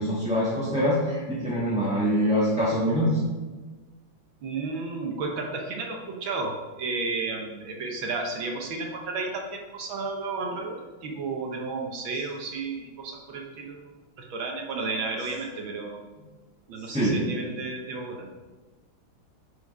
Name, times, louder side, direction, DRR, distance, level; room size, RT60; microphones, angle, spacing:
voice 1, 0.0-3.2 16.8-17.2, equal, 5° right, -8 dB, 1.2 m, -24 dB
voice 2, 4.4-13.8 14.2-16.0 16.7-18.3, right 3 dB, 70° right, 1 dB, 1.7 m, -32 dB
9.8 x 5.0 x 5.3 m, 1.3 s
omnidirectional pair, 2.3 m